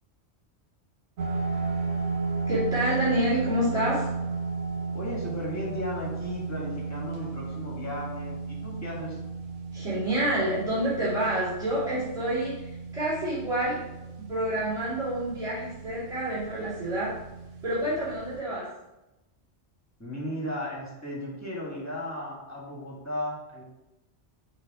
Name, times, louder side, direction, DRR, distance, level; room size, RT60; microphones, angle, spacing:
sound 1, 1.2-18.4, right 4 dB, 80° right, 1.1 m, -34 dB
voice 1, 2.5-4.1 9.7-13.8 14.2-17.1 17.6-18.7, right 1 dB, 5° right, -12 dB, 2.3 m, -28 dB
voice 2, 4.9-9.2 20.0-23.6, left 1 dB, 15° left, -4 dB, 1.7 m, -35 dB
6.6 x 3.2 x 4.8 m, 0.95 s
omnidirectional pair, 1.2 m